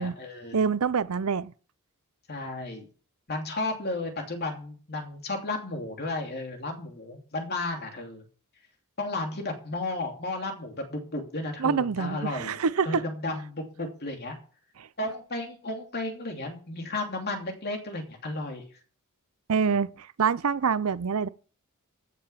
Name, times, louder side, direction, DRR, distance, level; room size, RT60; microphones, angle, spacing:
voice 1, 0.0-0.6 2.3-2.9 3.3-8.2 9.0-12.6 12.8-14.4 15.0-18.6, left 2 dB, 50° left, 2.8 m, -33 dB
voice 2, 0.5-1.5 11.6-13.0 14.8-14.9 19.5-21.3, right 6 dB, 75° right, 0.6 m, -26 dB
15.0 x 6.9 x 5.7 m
head